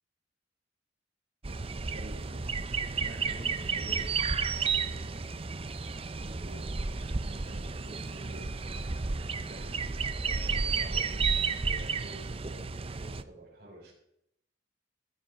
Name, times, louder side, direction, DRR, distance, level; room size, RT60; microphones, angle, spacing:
sound 1, 1.4-13.2, right 5 dB, 30° right, 0.6 m, -32 dB
voice 1, 1.9-2.5 3.0-4.2 4.5-13.9, right 1 dB, 50° right, -6 dB, 4.1 m, -50 dB
15.5 x 10.0 x 5.1 m, 0.77 s
head